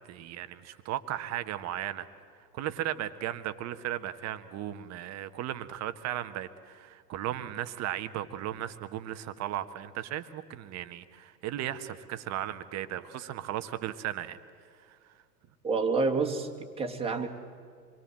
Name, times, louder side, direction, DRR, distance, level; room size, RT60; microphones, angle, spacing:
voice 1, 0.0-2.1 2.5-14.4 14.9-15.0, right 12 dB, 35° right, 11 dB, 1.4 m, -36 dB
voice 2, 15.6-17.3, right 4 dB, 10° right, 2 dB, 2.5 m, -28 dB
27.0 x 22.5 x 7.6 m, 2.2 s
hypercardioid pair, 100°, 49 cm